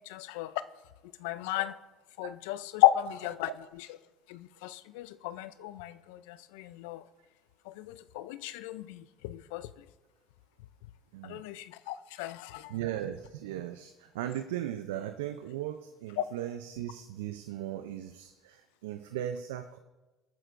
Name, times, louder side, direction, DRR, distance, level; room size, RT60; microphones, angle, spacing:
voice 1, 0.1-0.5 1.2-1.7 2.2-3.5 4.3-7.0 7.7-9.7 11.2-12.7 16.2-16.3, left 15 dB, 80° left, 14 dB, 0.4 m, -32 dB
voice 2, 12.7-19.8, right 11 dB, 85° right, 9 dB, 0.5 m, -37 dB
21.0 x 9.0 x 2.5 m, 1.2 s
hypercardioid pair, 70°, 0 cm